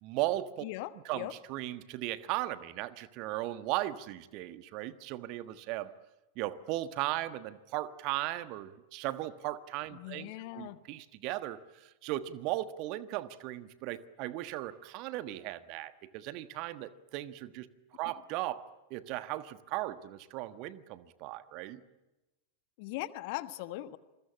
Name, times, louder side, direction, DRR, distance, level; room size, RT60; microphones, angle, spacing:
voice 1, 0.0-0.6 0.9-5.9 6.4-21.8, right 15 dB, 40° right, 14 dB, 1.4 m, -37 dB
voice 2, 0.6-1.3 9.9-10.8 22.8-24.0, left 16 dB, 45° left, 14 dB, 1.3 m, -40 dB
27.5 x 21.5 x 8.6 m, 1.0 s
figure-of-eight pair, 90°, 0 cm